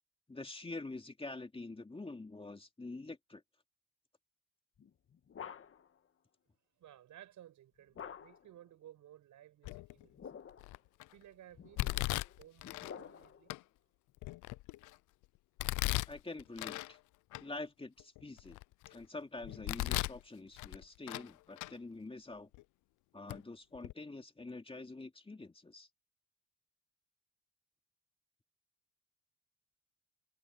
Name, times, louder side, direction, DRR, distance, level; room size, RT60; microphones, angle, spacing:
voice 1, 0.3-3.4 16.1-17.0 17.4-18.6 18.9-22.5 23.1-25.9, left 2 dB, 20° left, 2.5 m, -46 dB
sound 1, 4.8-6.0 7.9-8.6 9.9-10.8 11.5-13.5, left 8 dB, 45° left, 1.4 m, -50 dB
voice 2, 6.8-10.1 11.1-13.6, right 12 dB, 75° right, 7.8 m, -57 dB
Domestic sounds home sounds, 9.6-10.0 10.6-11.0 11.8-12.9 13.5-13.6 14.2-14.9 15.6-16.9 17.3-17.4 18.0-18.9 19.4-20.2 20.6-21.3 21.6-21.7 22.5-22.6 23.3-23.4 23.7-23.9, left 19 dB, 80° left, 0.5 m, -37 dB
cardioid pair, 90°, 30 cm